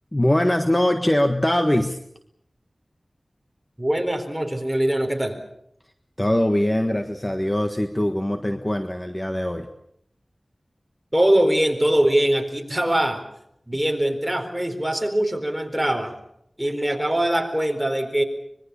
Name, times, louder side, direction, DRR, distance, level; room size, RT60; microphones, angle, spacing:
voice 1, 0.1-2.0 6.2-9.7, left 1 dB, 20° left, 6 dB, 1.4 m, -22 dB
voice 2, 3.8-5.4 11.1-13.2 13.7-16.1 16.6-18.2, right 1 dB, 5° right, 4 dB, 4.3 m, -22 dB
25.0 x 21.5 x 7.0 m, 0.73 s
wide cardioid pair, 65°, 0 cm